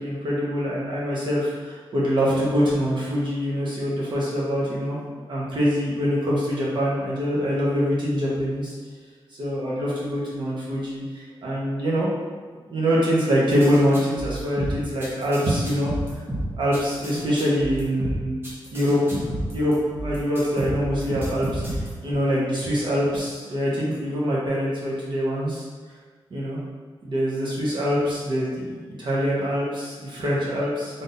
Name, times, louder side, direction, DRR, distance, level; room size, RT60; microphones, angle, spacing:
voice 1, 0.0-8.8 9.3-12.1 12.7-15.9 16.6-18.4 18.7-19.2 19.5-19.7 20.0-25.7 26.3-26.6 27.0-31.0, equal, 60° right, -6 dB, 1.1 m, -24 dB
sound 1, 13.5-22.1, right 1 dB, 25° right, 0.9 m, -31 dB
4.1 x 3.5 x 2.6 m, 1.5 s
wide cardioid pair, 175°, 9 cm